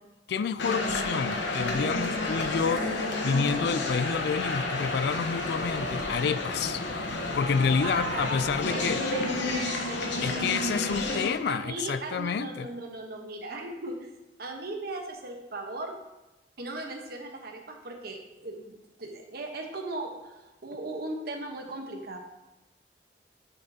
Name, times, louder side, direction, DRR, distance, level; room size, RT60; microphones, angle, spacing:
voice 1, 0.3-6.8 7.1-9.0 10.2-12.7, left 6 dB, 65° left, 13 dB, 0.3 m, -29 dB
sound 1, 0.6-11.3, left 2 dB, 85° left, 1.0 m, -30 dB
voice 2, 7.8-8.4 8.7-10.8 11.4-14.1 14.4-15.9 16.6-18.7 19.0-22.2, right 2 dB, 60° right, 2 dB, 1.1 m, -38 dB
9.7 x 5.5 x 2.8 m, 1.0 s
head